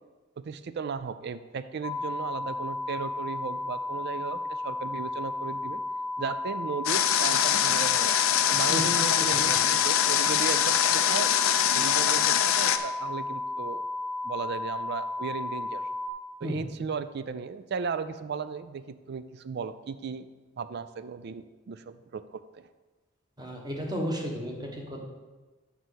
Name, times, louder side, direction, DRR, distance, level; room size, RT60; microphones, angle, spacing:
voice 1, 0.4-5.8 6.2-8.1 8.5-11.3 11.7-13.8 14.2-15.8 16.4-20.3 20.6-22.7, right 5 dB, 55° right, 13 dB, 0.4 m, -36 dB
sound 1, 1.8-16.1, left 2 dB, 25° left, 0.6 m, -34 dB
Water, 6.9-12.8, left 10 dB, 85° left, 0.5 m, -24 dB
voice 2, 23.4-25.0, equal, 20° right, 0 dB, 1.2 m, -33 dB
6.1 x 5.4 x 6.3 m, 1.2 s
head